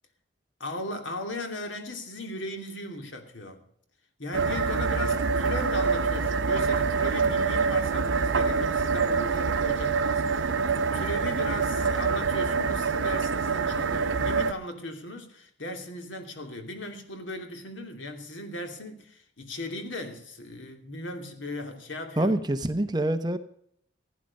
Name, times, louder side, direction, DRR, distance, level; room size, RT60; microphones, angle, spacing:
voice 1, 0.6-3.6 4.2-10.6 10.9-22.3, left 1 dB, 85° left, 5 dB, 2.8 m, -37 dB
sound 1, 4.3-14.5, right 5 dB, 85° right, 0.7 m, -26 dB
voice 2, 22.2-23.4, right 1 dB, 20° right, 9 dB, 0.9 m, -26 dB
15.5 x 10.0 x 5.4 m, 0.66 s
head